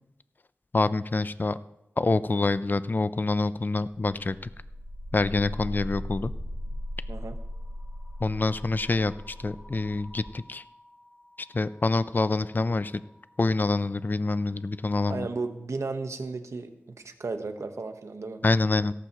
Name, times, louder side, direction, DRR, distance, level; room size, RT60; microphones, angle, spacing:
voice 1, 0.7-1.6 2.0-4.4 5.1-6.3 8.2-10.6 11.5-13.0 13.4-15.3 18.4-18.9, left 3 dB, 40° left, 15 dB, 0.4 m, -26 dB
sound 1, 4.5-13.7, left 1 dB, 15° right, 4.4 m, -40 dB
voice 2, 15.1-16.7 17.0-18.4, right 3 dB, 85° right, 7 dB, 1.1 m, -34 dB
16.5 x 14.0 x 3.0 m, 0.86 s
wide cardioid pair, 55°, 5 cm